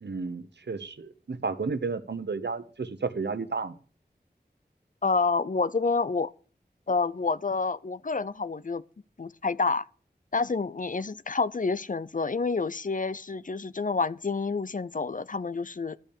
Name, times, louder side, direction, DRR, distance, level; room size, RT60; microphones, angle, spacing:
voice 1, 0.0-3.8, right 4 dB, 85° right, 1.0 m, -32 dB
voice 2, 5.0-6.3 6.9-8.8 9.2-9.8 10.3-16.0, left 4 dB, 50° left, 0.6 m, -28 dB
12.5 x 5.6 x 8.5 m
wide cardioid pair, 55°, 17 cm